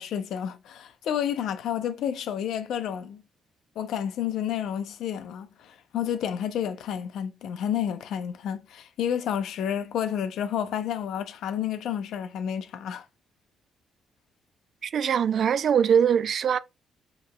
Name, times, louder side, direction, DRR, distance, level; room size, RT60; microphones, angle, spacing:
voice 1, 0.0-3.2 3.8-13.1, left 9 dB, 80° left, 0.5 m, -30 dB
voice 2, 14.8-16.6, right 8 dB, 60° right, 0.3 m, -22 dB
4.8 x 3.0 x 2.2 m
cardioid pair, 90°, 0 cm